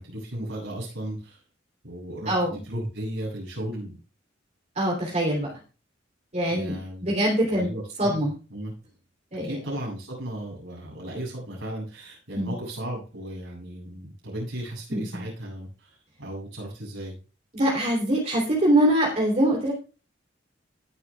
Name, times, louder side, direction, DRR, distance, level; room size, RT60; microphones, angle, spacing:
voice 1, 0.0-1.4 1.8-4.0 6.5-7.1 7.4-8.1 8.5-8.7 9.4-17.2, right 1 dB, 80° right, -3 dB, 8.0 m, -35 dB
voice 2, 4.7-5.5 6.3-7.7 8.0-8.3 9.3-9.6 12.3-12.5 14.9-15.2 17.5-19.7, right 1 dB, 40° right, -2 dB, 3.3 m, -23 dB
20.5 x 9.0 x 2.4 m, 0.35 s
head